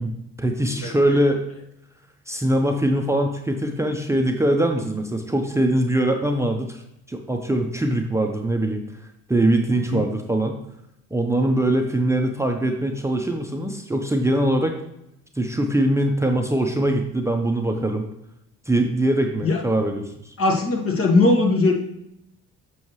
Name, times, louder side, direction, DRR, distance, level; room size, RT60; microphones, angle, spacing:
voice 1, 0.0-1.4 2.3-6.8 7.1-8.8 9.3-10.6 11.1-14.8 15.4-18.1 18.7-20.3, right 1 dB, 10° right, 3 dB, 0.8 m, -22 dB
voice 2, 20.4-21.7, left 2 dB, 45° left, 1 dB, 1.6 m, -19 dB
7.2 x 6.3 x 3.2 m, 0.81 s
supercardioid pair, 75°, 30 cm